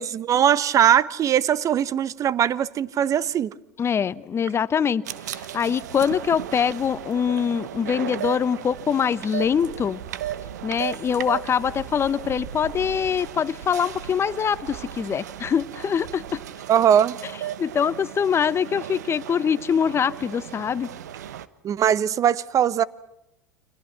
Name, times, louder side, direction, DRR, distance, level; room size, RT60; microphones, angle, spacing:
voice 1, 0.0-3.5 16.7-17.2 21.6-22.8, right 9 dB, 35° right, 1.1 m, -20 dB
voice 2, 3.8-5.0 5.3-10.0 10.6-16.4 17.6-20.9, left 7 dB, 30° left, 1.0 m, -24 dB
sound 1, 5.0-21.5, right 11 dB, 75° right, 1.1 m, -36 dB
29.5 x 25.0 x 6.0 m
hypercardioid pair, 85°, 9 cm